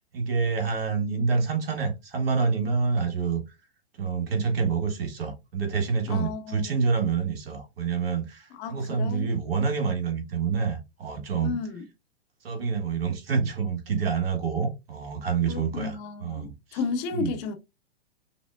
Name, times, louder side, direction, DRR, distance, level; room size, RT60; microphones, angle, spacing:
voice 1, 0.1-3.4 4.0-11.5 12.4-16.0 16.2-16.8 17.1-17.3, right 5 dB, 60° right, 1.7 m, -27 dB
voice 2, 6.1-6.8 8.6-9.3 11.4-11.9 15.5-17.5, left 5 dB, 35° left, 0.7 m, -33 dB
5.8 x 2.1 x 2.5 m
figure-of-eight pair, 105°, 33 cm